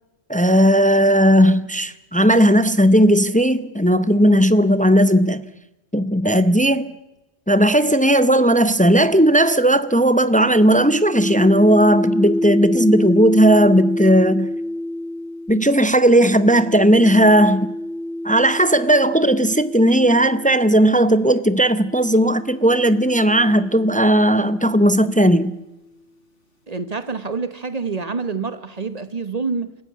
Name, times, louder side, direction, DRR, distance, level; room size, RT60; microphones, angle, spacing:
voice 1, 0.3-5.5 5.9-6.9 7.5-14.5 15.5-17.7 18.2-25.6, right 1 dB, 10° left, 0.5 m, -16 dB
sound 1, 10.4-20.7 21.6-25.4, left 1 dB, 80° left, 4.0 m, -28 dB
voice 2, 26.7-29.8, right 4 dB, 35° right, 1.2 m, -27 dB
27.0 x 15.0 x 8.6 m
omnidirectional pair, 1.2 m